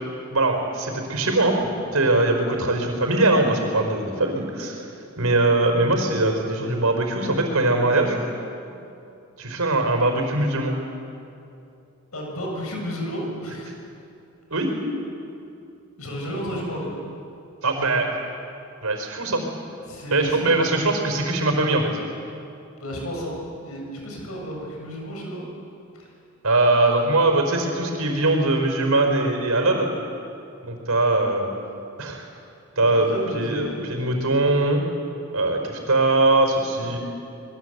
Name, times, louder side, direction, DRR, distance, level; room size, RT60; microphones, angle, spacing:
voice 1, 0.3-1.6 1.9-4.8 5.2-8.2 9.4-10.7 14.5-14.7 17.6-18.1 18.8-19.4 20.1-21.9 26.4-29.9 30.6-31.5 32.0-32.2 32.8-34.8 35.3-37.0, right 2 dB, 85° right, 4 dB, 4.9 m, -21 dB
voice 2, 12.1-13.8 16.0-17.0 19.9-20.8 22.8-25.4 25.9-26.1 32.7-33.8 36.8-36.9, equal, 80° left, -1 dB, 7.6 m, -32 dB
26.5 x 22.0 x 8.2 m, 2.6 s
head